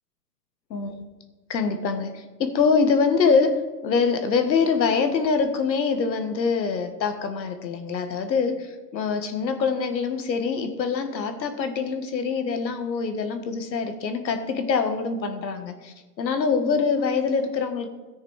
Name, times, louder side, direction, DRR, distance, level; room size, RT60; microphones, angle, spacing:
voice 1, 0.7-1.0 1.5-17.9, left 5 dB, 85° left, 7 dB, 1.6 m, -24 dB
13.5 x 6.6 x 4.9 m, 1.3 s
hypercardioid pair, 145°, 50 cm